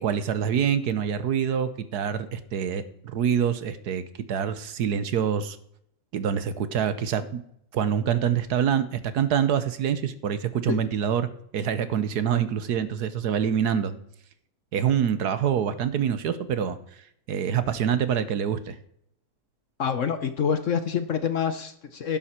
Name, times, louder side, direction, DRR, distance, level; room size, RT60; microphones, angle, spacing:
voice 1, 0.0-4.0 4.3-5.6 6.1-7.4 7.7-11.3 11.5-13.9 14.7-16.8 17.3-18.8, right 8 dB, 70° right, 13 dB, 1.4 m, -25 dB
voice 2, 19.8-22.2, left 7 dB, 55° left, 10 dB, 1.0 m, -26 dB
11.5 x 11.0 x 4.4 m, 0.71 s
omnidirectional pair, 1.9 m